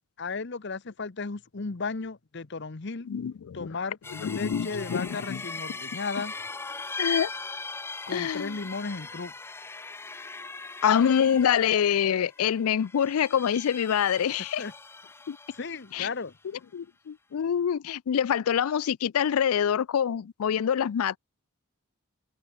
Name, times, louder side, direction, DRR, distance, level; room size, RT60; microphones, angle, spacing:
voice 1, 0.2-3.1 3.5-6.3 8.1-9.3 14.6-14.7 15.6-16.3, left 4 dB, 50° left, 0.8 m, -35 dB
voice 2, 3.1-3.8 4.1-5.4 7.0-7.3 8.1-8.6 10.8-14.6 15.3-15.4 15.9-16.1 16.7-21.2, left 8 dB, 80° left, 0.4 m, -26 dB
sound 1, 4.0-16.1, left 3 dB, 10° left, 0.4 m, -39 dB
head